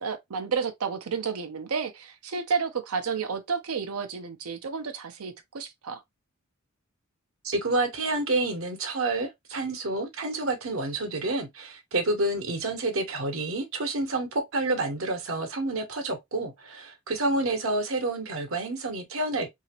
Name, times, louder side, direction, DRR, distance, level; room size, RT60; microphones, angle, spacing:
voice 1, 0.0-6.0, right 5 dB, 90° right, 0.6 m, -31 dB
voice 2, 7.4-19.5, right 2 dB, 65° right, 1.0 m, -29 dB
2.9 x 2.7 x 2.9 m
head